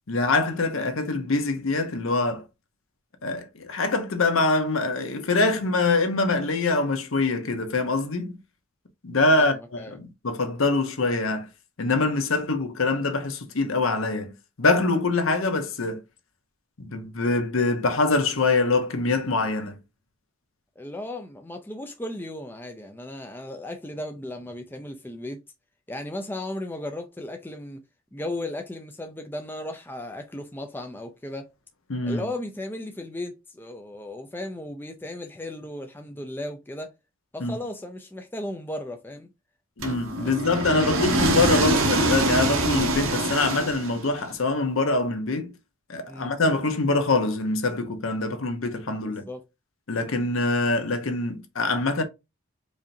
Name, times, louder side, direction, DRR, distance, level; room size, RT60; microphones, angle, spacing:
voice 1, 0.1-2.4 3.2-8.4 9.0-11.5 11.8-16.0 16.8-19.7 31.9-32.3 37.4-37.6 39.8-45.5 45.9-49.2 49.9-52.0, left 3 dB, 70° left, 0.8 m, -24 dB
voice 2, 9.4-10.0 20.8-25.4 25.9-27.8 28.1-31.5 32.0-36.9 37.3-39.3 40.2-40.3 40.7-40.9 46.1-46.3 49.0-49.4, left 1 dB, 10° left, 0.4 m, -36 dB
sound 1, 39.8-44.2, right 2 dB, 70° right, 0.9 m, -24 dB
4.8 x 2.7 x 2.6 m
head